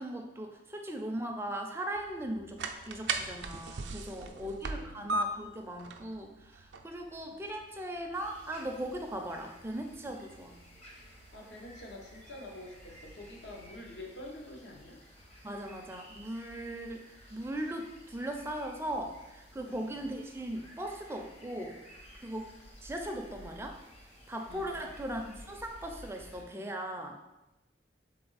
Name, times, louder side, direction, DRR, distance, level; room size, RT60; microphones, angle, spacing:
voice 1, 0.0-2.6 2.9-10.6 15.4-17.0 17.3-21.8 22.2-22.5 22.8-23.8 24.3-27.2, right 1 dB, 15° right, 3 dB, 0.4 m, -38 dB
sound 1, 1.9-13.7, right 3 dB, 85° right, 0.4 m, -41 dB
voice 2, 4.1-5.1 10.1-10.2 11.0-15.0 16.7-16.8 19.5-19.9 24.5-25.0, left 1 dB, 75° left, 0 dB, 0.9 m, -48 dB
sound 2, 8.1-26.4, equal, 35° left, 0.8 m, -54 dB
3.9 x 3.4 x 4.0 m, 1.0 s
head